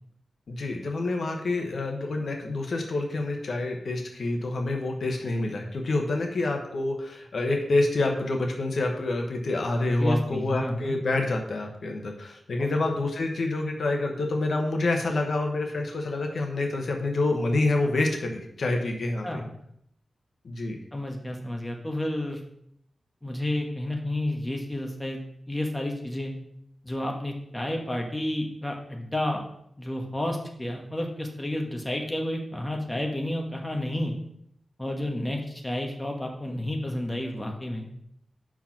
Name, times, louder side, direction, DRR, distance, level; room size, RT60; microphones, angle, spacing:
voice 1, 0.5-19.4 20.4-20.8, left 2 dB, 60° left, 3 dB, 1.0 m, -27 dB
voice 2, 9.9-11.0 12.6-12.8 19.2-19.5 20.9-22.4 23.2-25.2 25.5-26.3 26.8-29.4 29.8-34.1 34.8-37.9, left 1 dB, 10° left, 1 dB, 1.2 m, -31 dB
5.8 x 4.7 x 5.9 m, 0.72 s
wide cardioid pair, 120°, 0 cm